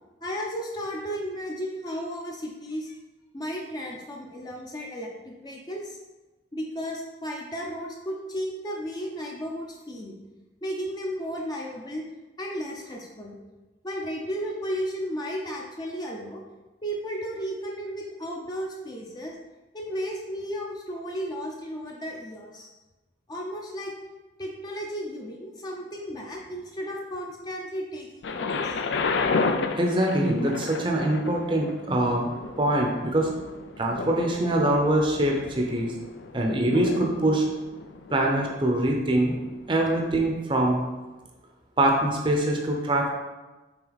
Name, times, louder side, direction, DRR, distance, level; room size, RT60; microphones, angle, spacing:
voice 1, 0.2-3.0 3.3-6.0 6.5-10.2 10.6-12.0 12.4-13.4 13.8-16.4 16.8-19.3 19.7-22.7 23.3-23.9 24.4-28.8, equal, 20° left, -1 dB, 0.6 m, -34 dB
Thunder, 28.2-40.1 40.8-40.9, left 4 dB, 80° left, 0.4 m, -32 dB
voice 2, 29.8-32.3 32.6-33.3 33.8-35.9 36.3-37.5 38.1-39.4 39.7-40.8 41.8-43.1, right 1 dB, 30° right, 0 dB, 0.7 m, -23 dB
5.9 x 3.9 x 4.0 m, 1.1 s
head